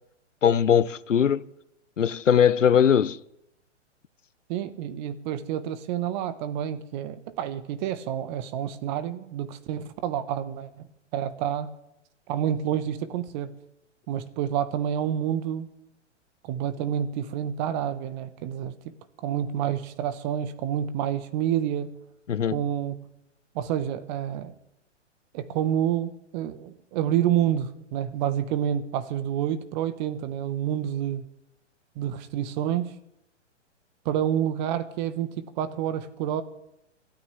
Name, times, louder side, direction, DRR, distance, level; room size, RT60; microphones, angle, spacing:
voice 1, 0.4-1.4 2.0-3.2 22.3-22.6, left 8 dB, 90° left, 0.7 m, -20 dB
voice 2, 4.5-10.7 11.1-11.8 12.3-13.5 14.1-15.7 16.4-18.9 19.2-21.9 22.5-22.9 23.5-24.5 25.3-31.2 31.9-32.9 34.0-36.4, right 10 dB, 40° right, 1.3 m, -28 dB
27.0 x 13.0 x 3.4 m
hypercardioid pair, 115°, 36 cm